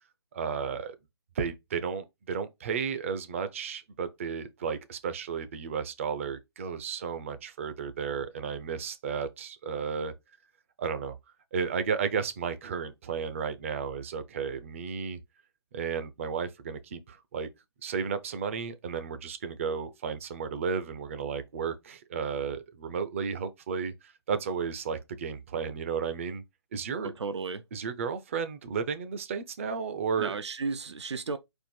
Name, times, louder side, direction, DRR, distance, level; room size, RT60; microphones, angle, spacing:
voice 1, 0.3-1.0 1.3-10.1 10.8-11.2 11.5-15.2 15.7-17.5 17.8-26.4 26.7-27.1 27.7-30.4, right 6 dB, 30° right, 0.5 m, -33 dB
voice 2, 27.0-27.6 30.2-31.4, right 4 dB, 80° right, 0.6 m, -34 dB
4.4 x 2.4 x 4.4 m
hypercardioid pair, 155°, 14 cm